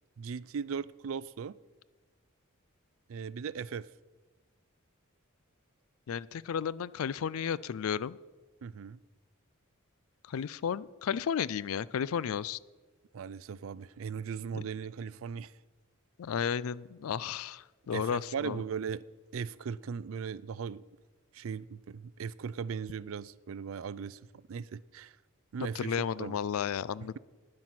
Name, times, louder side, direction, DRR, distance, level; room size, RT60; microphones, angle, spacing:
voice 1, 0.2-1.5 3.1-3.9 8.6-9.0 13.1-15.5 17.9-19.0 19.3-20.8 21.3-24.2 24.5-25.1 25.5-26.4, right 6 dB, 65° right, 0.4 m, -38 dB
voice 2, 6.1-8.2 10.3-12.6 14.5-14.6 16.2-18.6 25.8-27.2, left 7 dB, 75° left, 0.4 m, -33 dB
11.5 x 9.7 x 5.9 m
head